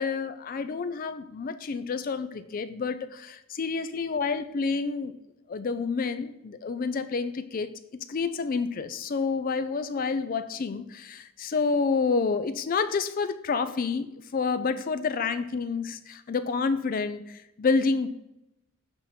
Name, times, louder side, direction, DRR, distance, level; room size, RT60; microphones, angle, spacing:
voice 1, 0.0-5.1 5.5-18.1, left 4 dB, 40° left, 11 dB, 0.4 m, -29 dB
7.9 x 3.5 x 5.7 m, 0.88 s
head